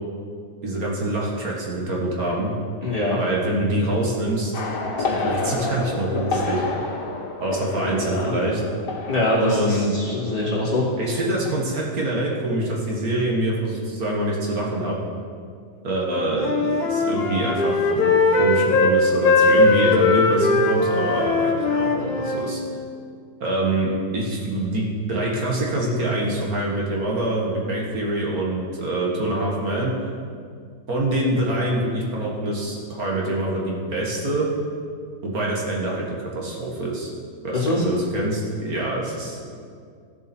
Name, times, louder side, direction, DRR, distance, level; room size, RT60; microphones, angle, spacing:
voice 1, 0.6-2.5 3.2-4.5 5.0-6.6 7.4-8.6 9.4-9.9 11.0-15.0 15.8-22.6 23.4-29.9 30.9-34.5 35.2-37.1 37.4-39.5, right 1 dB, 60° right, -3 dB, 2.0 m, -25 dB
voice 2, 2.8-3.2 7.8-8.3 9.1-10.8 37.5-37.8, left 1 dB, 30° left, -8 dB, 3.0 m, -23 dB
sound 1, 4.5-11.0 11.3-11.6, left 3 dB, 85° left, 1.8 m, -29 dB
Wind instrument woodwind instrument, 16.1-19.0 19.2-22.5, left 3 dB, 70° left, 1.7 m, -19 dB
15.0 x 7.0 x 4.4 m, 2.2 s
omnidirectional pair, 1.8 m